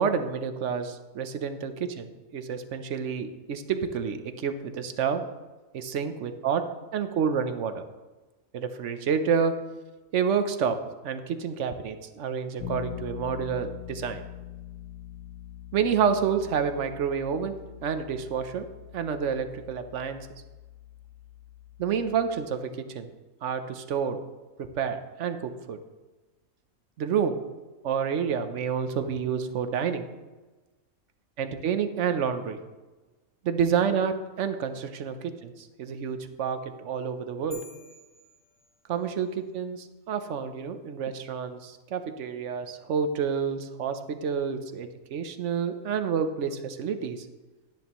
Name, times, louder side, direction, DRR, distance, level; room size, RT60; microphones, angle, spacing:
voice 1, 0.0-5.2 5.7-6.6 6.9-7.9 8.5-9.5 10.1-10.8 11.0-14.2 15.7-17.5 17.8-18.6 18.9-20.2 21.8-23.1 23.4-24.2 24.8-25.8 27.0-27.4 27.8-30.1 31.4-32.6 33.4-35.5 35.8-37.6 38.9-47.3, right 7 dB, 65° right, 8 dB, 1.0 m, -29 dB
Bass guitar, 12.6-22.4, left 12 dB, 75° left, 1.3 m, -43 dB
sound 1, 37.5-39.2, left 1 dB, 45° left, 3.3 m, -50 dB
11.5 x 10.5 x 3.0 m, 1.2 s
omnidirectional pair, 1.4 m